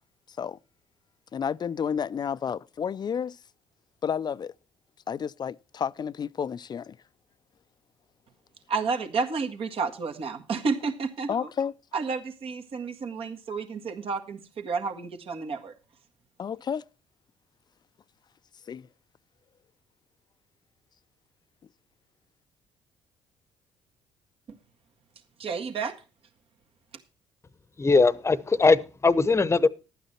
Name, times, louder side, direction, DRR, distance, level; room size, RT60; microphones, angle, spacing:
voice 1, 0.3-0.6 1.3-3.4 4.0-4.5 5.1-7.0 11.3-11.7 16.4-16.8 18.7-18.9, left 7 dB, 40° left, 0.5 m, -31 dB
voice 2, 8.7-11.5 11.9-15.7 25.4-26.0, right 4 dB, 55° right, 1.7 m, -31 dB
voice 3, 27.8-29.7, left 3 dB, 25° left, 0.9 m, -20 dB
12.0 x 9.1 x 4.3 m
hypercardioid pair, 55°, 11 cm